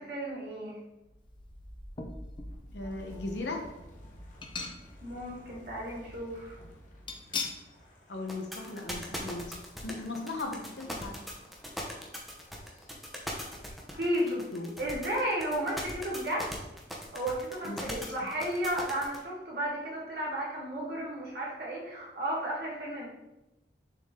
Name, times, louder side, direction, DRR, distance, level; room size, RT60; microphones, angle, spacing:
voice 1, 0.1-0.8 5.0-6.6 13.9-14.4 14.8-16.6 17.1-23.1, right 1 dB, 60° right, -5 dB, 2.1 m, -33 dB
Wind, 1.0-14.0, equal, 45° left, 1.1 m, -51 dB
sound 1, 1.9-2.5 3.1-3.2 4.4-5.2 5.5-5.6 7.1-7.7 8.1-8.2 8.6-8.7, left 4 dB, 25° left, 0.5 m, -38 dB
voice 2, 2.7-3.6 8.1-9.6 9.8-11.1 14.2-14.8 17.6-17.9, left 2 dB, 80° left, 2 dB, 1.1 m, -37 dB
sound 2, 8.3-19.2, equal, ahead, 0.8 m, -39 dB
6.7 x 3.8 x 3.7 m, 0.97 s
head